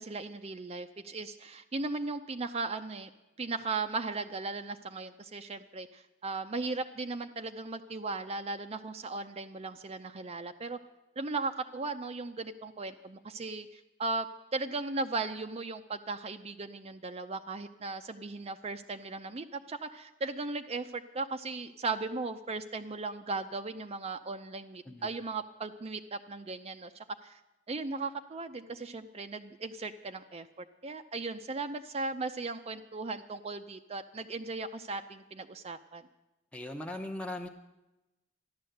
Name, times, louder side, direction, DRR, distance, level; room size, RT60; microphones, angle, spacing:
voice 1, 0.0-3.1 3.4-10.8 11.2-14.3 14.5-26.9 27.2-27.4 27.7-36.0, right 3 dB, 30° right, 7 dB, 0.5 m, -37 dB
voice 2, 36.5-37.5, left 1 dB, 5° left, 2 dB, 0.8 m, -39 dB
14.0 x 11.0 x 7.8 m, 0.99 s
head